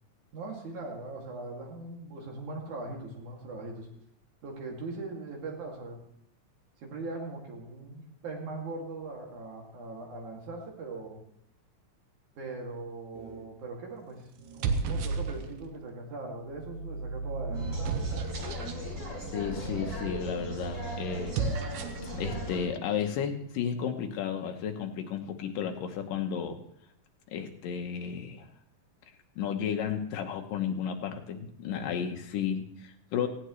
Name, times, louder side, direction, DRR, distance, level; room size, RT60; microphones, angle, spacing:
voice 1, 0.3-3.9 4.4-6.0 6.8-11.2 12.4-17.7, right 3 dB, 65° right, 0 dB, 3.9 m, -40 dB
sound 1, 13.2-13.6 14.4-15.8 16.5-18.8 21.2-22.1, right 4 dB, 80° right, 2.6 m, -33 dB
sound 2, 17.5-22.6, right 1 dB, 30° right, 6.9 m, -36 dB
voice 2, 19.3-21.4 22.2-26.6 27.3-28.5 29.4-33.3, left 8 dB, 85° left, 5 dB, 2.8 m, -33 dB
18.0 x 16.0 x 3.2 m, 0.72 s
omnidirectional pair, 3.8 m